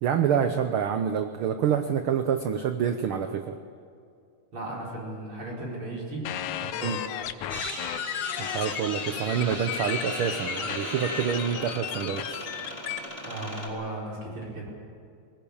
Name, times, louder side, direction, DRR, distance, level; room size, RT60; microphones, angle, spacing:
voice 1, 0.0-3.6 6.8-7.0 8.4-12.5, right 8 dB, 75° right, 8 dB, 1.2 m, -27 dB
voice 2, 4.5-6.3 6.6-7.2 13.2-14.8, right 1 dB, 45° right, -4 dB, 5.3 m, -36 dB
sound 1, 6.2-13.0, left 11 dB, 80° left, 2.3 m, -34 dB
sound 2, 7.5-13.7, left 1 dB, 10° left, 4.5 m, -36 dB
19.5 x 19.5 x 8.7 m, 2.4 s
omnidirectional pair, 3.4 m